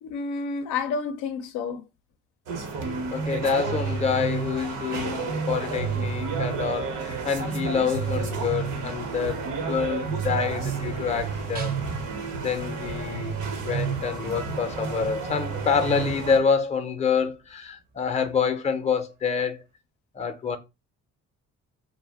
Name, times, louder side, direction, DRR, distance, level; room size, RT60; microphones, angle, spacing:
voice 1, 0.0-1.8, left 5 dB, 90° left, 0.5 m, -30 dB
sound 1, 2.5-16.4, right 5 dB, 80° right, 0.8 m, -30 dB
voice 2, 3.1-11.8 12.4-19.6 20.1-20.6, left 6 dB, 25° left, 0.4 m, -27 dB
sound 2, 5.8-18.1, right 3 dB, 30° right, 0.5 m, -45 dB
2.3 x 2.0 x 3.3 m
cardioid pair, 90°, 30 cm